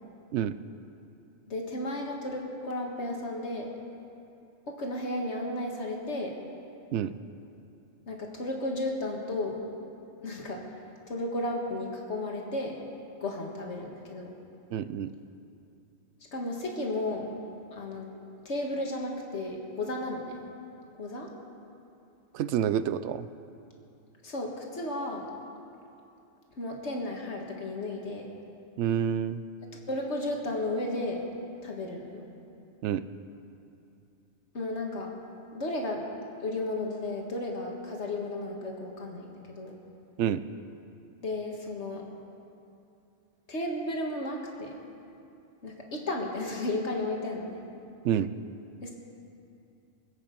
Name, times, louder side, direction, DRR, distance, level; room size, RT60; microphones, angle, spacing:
voice 1, 1.5-3.7 4.7-6.4 8.1-9.6 10.2-10.6 11.1-12.8 13.2-14.3 16.3-17.3 17.7-18.1 18.5-20.2 21.0-21.3 24.2-25.3 26.6-28.3 29.9-31.2 31.6-32.2 34.5-35.1 35.5-36.0 36.4-39.7 41.2-42.1 43.5-44.7 45.6-47.6 48.8-48.9, left 2 dB, 80° left, 0 dB, 2.0 m, -33 dB
voice 2, 14.7-15.1 22.3-23.3 28.8-29.4 32.8-33.0 40.2-40.4 48.0-48.3, right 9 dB, 85° right, 14 dB, 0.9 m, -28 dB
25.0 x 8.5 x 5.3 m, 2.7 s
omnidirectional pair, 1.2 m